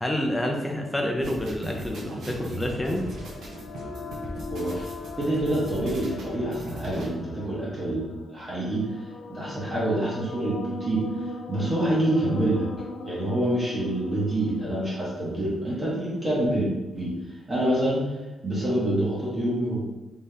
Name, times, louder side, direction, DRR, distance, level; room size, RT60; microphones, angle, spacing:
voice 1, 0.0-3.1, left 1 dB, 5° left, 1 dB, 0.4 m, -28 dB
sound 1, 1.2-7.1, right 1 dB, 75° right, 0.7 m, -38 dB
sound 2, 2.6-16.3, left 3 dB, 75° left, 0.4 m, -40 dB
voice 2, 4.5-4.9 5.2-8.1 8.3-8.8 9.3-11.0 11.5-12.6 13.0-16.7 16.9-17.1 17.5-18.0 18.4-19.9, right 1 dB, 25° right, -7 dB, 0.8 m, -26 dB
3.5 x 2.7 x 3.2 m, 1.1 s
wide cardioid pair, 175°, 0 cm